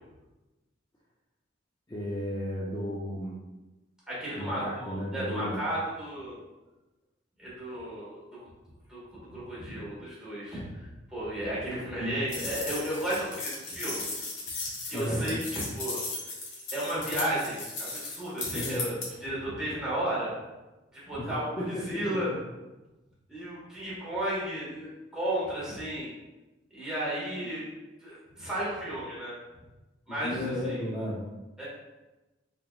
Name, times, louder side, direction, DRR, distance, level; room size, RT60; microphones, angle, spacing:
voice 1, 1.9-3.4 4.4-5.6 14.9-15.3 18.5-18.8 21.2-22.4 30.1-31.3, equal, 20° left, -6 dB, 0.5 m, -34 dB
voice 2, 4.1-6.4 7.4-8.4 8.9-14.1 14.9-16.0 16.7-20.3 20.9-22.3 23.3-26.1 26.7-27.6 28.0-29.3 30.1-30.8 31.6-31.7, right 1 dB, 5° right, -9 dB, 1.4 m, -33 dB
sound 1, 12.3-19.1, left 3 dB, 80° left, 1.1 m, -36 dB
3.7 x 3.5 x 2.3 m, 1.1 s
head